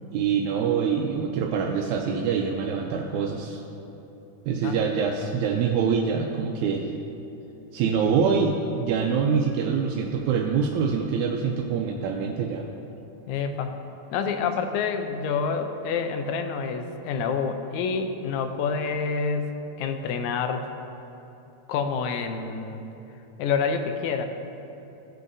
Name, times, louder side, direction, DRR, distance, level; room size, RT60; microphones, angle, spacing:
voice 1, 0.1-3.6 4.5-6.9 7.7-12.7, right 6 dB, 85° right, 0 dB, 2.0 m, -25 dB
voice 2, 4.6-5.2 13.3-13.7 14.1-20.7 21.7-22.8 23.4-24.2, left 5 dB, 85° left, 6 dB, 2.0 m, -28 dB
16.0 x 6.5 x 2.6 m, 3.0 s
omnidirectional pair, 3.3 m